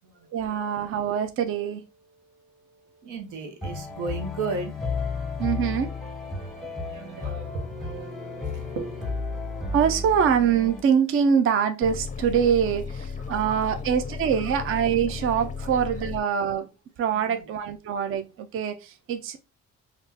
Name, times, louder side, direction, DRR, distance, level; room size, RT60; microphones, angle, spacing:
voice 1, 0.3-1.8 5.4-5.9 9.7-16.7 17.0-19.4, right 7 dB, 45° right, 0.4 m, -24 dB
voice 2, 3.0-4.9 6.7-8.1 8.8-9.1 13.3-13.8 14.4-14.5 15.6-15.7 17.2-17.4, right 4 dB, 90° right, 0.9 m, -35 dB
sound 1, 3.6-10.8, left 4 dB, ahead, 1.0 m, -33 dB
sound 2, 11.8-16.2, left 5 dB, 25° left, 0.5 m, -35 dB
3.5 x 2.4 x 2.7 m
cardioid pair, 90°, 30 cm